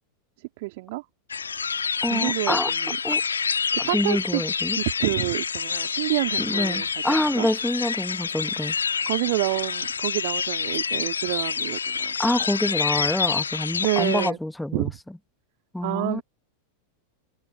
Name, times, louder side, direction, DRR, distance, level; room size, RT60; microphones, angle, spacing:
voice 1, 0.6-1.0 2.1-3.0 3.7-4.4 4.7-7.0 7.4-7.5 9.1-12.1 13.8-14.4 14.7-14.9 15.8-16.2, right 22 dB, 50° right, 3.1 m, -28 dB
sound 1, 1.3-14.3, left 6 dB, 75° left, 1.7 m, -27 dB
voice 2, 2.0-2.7 3.0-3.2 3.8-4.8 6.4-8.7 12.2-14.9 15.7-16.2, left 1 dB, 5° left, 1.6 m, -26 dB
figure-of-eight pair, 90°, 0 cm